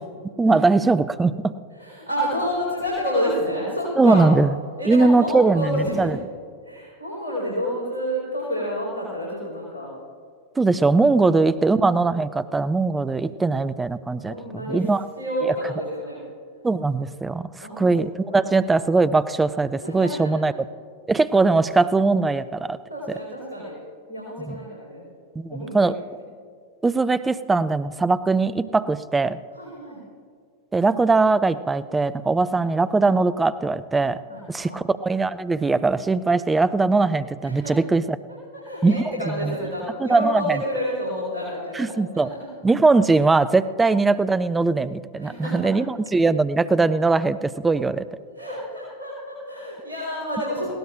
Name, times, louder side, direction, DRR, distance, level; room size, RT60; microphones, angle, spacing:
voice 1, 0.4-1.5 4.0-4.5 4.9-6.1 10.6-15.0 16.6-17.5 17.8-20.5 21.1-22.8 24.5-24.6 25.4-25.9 26.8-29.4 30.7-34.2 34.5-38.0 38.8-39.0 39.4-39.5 40.0-40.6 41.8-42.3 42.6-48.0, right 3 dB, 10° right, 14 dB, 0.4 m, -20 dB
voice 2, 1.7-4.3 4.8-6.1 6.6-9.9 11.1-11.4 14.2-14.9 15.2-16.2 17.6-18.5 19.8-20.5 22.9-23.8 24.1-25.1 25.5-25.9 29.5-30.0 34.3-34.7 37.4-37.8 38.3-41.9 42.1-42.5 43.8-43.9 45.2-45.7 47.7-50.7, equal, 80° right, -5 dB, 4.3 m, -29 dB
20.5 x 16.5 x 2.5 m, 2.1 s
figure-of-eight pair, 90°, 0 cm